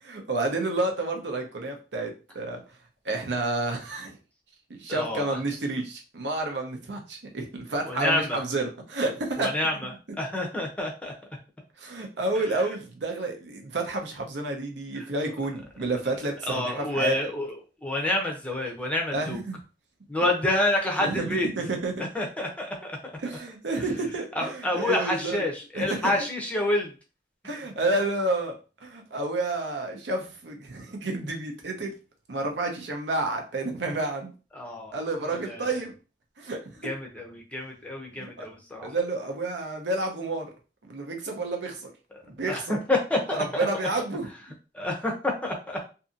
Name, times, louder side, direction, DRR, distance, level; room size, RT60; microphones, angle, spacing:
voice 1, 0.0-2.6 3.0-4.2 4.7-9.5 11.8-17.2 19.1-19.6 20.2-20.3 21.0-22.1 23.2-25.4 25.7-26.1 27.4-28.5 28.8-31.9 32.3-34.3 34.9-35.9 36.4-36.9 38.2-38.5 38.8-40.5 40.8-41.9 42.3-42.8 43.4-44.3, right 2 dB, 80° right, 3 dB, 0.7 m, -30 dB
voice 2, 4.9-5.4 7.9-8.4 9.4-9.9 10.2-11.1 16.5-17.5 17.8-19.4 20.1-21.5 22.1-23.0 24.4-26.9 34.5-35.0 35.3-35.6 36.8-38.9 42.5-43.6 44.7-45.9, left 1 dB, 10° left, 0 dB, 0.5 m, -28 dB
2.6 x 2.6 x 2.5 m, 0.33 s
head